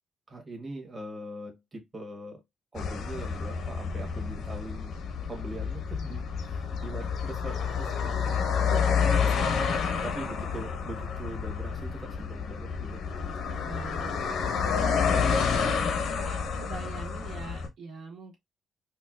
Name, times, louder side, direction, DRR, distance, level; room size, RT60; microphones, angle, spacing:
voice 1, 0.3-2.4 2.7-4.9 5.3-9.0 9.7-13.2, right 1 dB, 30° right, 1.3 m, -42 dB
sound 1, 2.8-17.7, left 6 dB, 75° left, 0.9 m, -29 dB
voice 2, 13.4-14.2 14.8-15.8 16.1-18.4, right 4 dB, 70° right, 1.6 m, -42 dB
4.3 x 2.3 x 2.3 m
cardioid pair, 90°, 0 cm